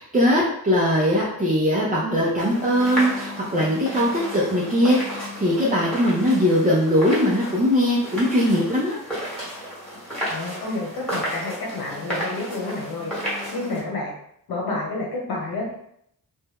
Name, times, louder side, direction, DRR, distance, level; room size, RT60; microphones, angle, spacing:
voice 1, 0.0-9.0, equal, 20° right, -7 dB, 0.6 m, -20 dB
sound 1, 2.4-13.8, equal, 5° left, 1.3 m, -32 dB
voice 2, 10.3-13.1 13.5-14.1 14.5-15.7, left 2 dB, 85° left, -3 dB, 1.3 m, -29 dB
2.6 x 2.2 x 3.5 m, 0.72 s
wide cardioid pair, 120°, 36 cm